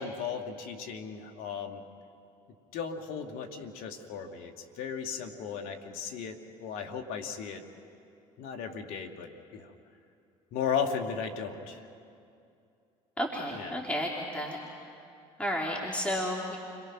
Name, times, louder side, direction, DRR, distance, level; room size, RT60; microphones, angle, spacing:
voice 1, 0.0-1.8 2.7-7.6 8.4-9.7 10.5-11.8 13.5-13.8, left 6 dB, 70° left, 5 dB, 2.2 m, -36 dB
voice 2, 13.2-14.6 15.4-16.6, equal, 10° left, -2 dB, 3.1 m, -32 dB
30.0 x 22.5 x 6.1 m, 2.5 s
hypercardioid pair, 70°, 16 cm